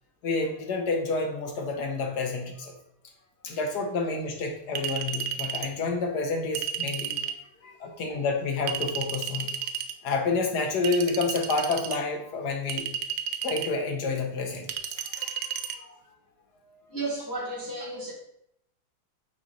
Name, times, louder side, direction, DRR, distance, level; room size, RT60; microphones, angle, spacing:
voice 1, 0.2-2.7 3.4-7.1 7.6-9.5 10.0-12.9 13.4-14.7 15.1-16.0 16.7-16.9, left 3 dB, 55° left, 2 dB, 1.5 m, -29 dB
Chink clink, 4.8-5.7 6.5-7.4 8.7-9.9 10.8-12.0 12.7-13.7 14.7-15.8, right 8 dB, 75° right, 1.0 m, -33 dB
voice 2, 16.9-18.1, right 2 dB, 10° left, -8 dB, 2.2 m, -33 dB
7.4 x 4.5 x 4.1 m, 0.74 s
omnidirectional pair, 2.4 m